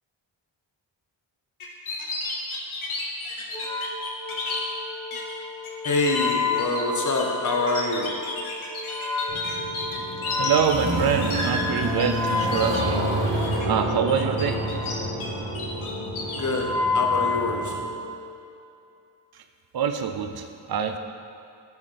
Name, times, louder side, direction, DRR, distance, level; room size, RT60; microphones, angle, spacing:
sound 1, 1.6-4.6 5.1-5.3 5.6-12.0 12.3-12.8 13.2-13.7 14.1-15.3 15.5-16.6, left 3 dB, 75° left, 1.0 m, -33 dB
Wind instrument woodwind instrument, 3.5-18.3, left 3 dB, 10° left, 0.6 m, -31 dB
voice 1, 5.8-8.2 16.4-16.7 16.9-17.8, left 2 dB, 35° left, 1 dB, 1.0 m, -25 dB
sound 2, 9.3-17.8, right 1 dB, 70° right, 1.4 m, -29 dB
voice 2, 10.4-13.3 13.6-14.6 19.7-21.0, right 7 dB, 50° right, 6 dB, 0.6 m, -25 dB
6.1 x 4.8 x 3.7 m, 2.5 s
cardioid pair, 50°, 49 cm